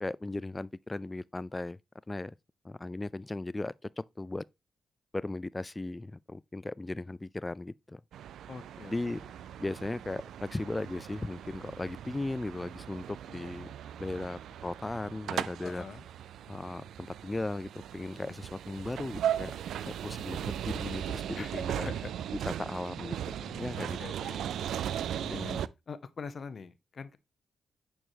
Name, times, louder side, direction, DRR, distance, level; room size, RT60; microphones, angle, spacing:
voice 1, 0.0-1.8 2.1-2.3 2.6-4.4 5.1-8.0 8.9-9.2 9.6-13.7 14.0-15.8 16.5-19.5 19.8-21.9 22.6-24.3 25.2-25.6, left 2 dB, 25° left, 0.3 m, -37 dB
sound 1, 8.1-25.7, right 10 dB, 85° right, 0.3 m, -38 dB
voice 2, 8.5-9.0 15.6-16.0 21.3-22.1 23.7-24.5 25.1-25.5 25.9-27.2, left 5 dB, 55° left, 0.9 m, -44 dB
9.0 x 4.6 x 2.8 m
supercardioid pair, 55°, 0 cm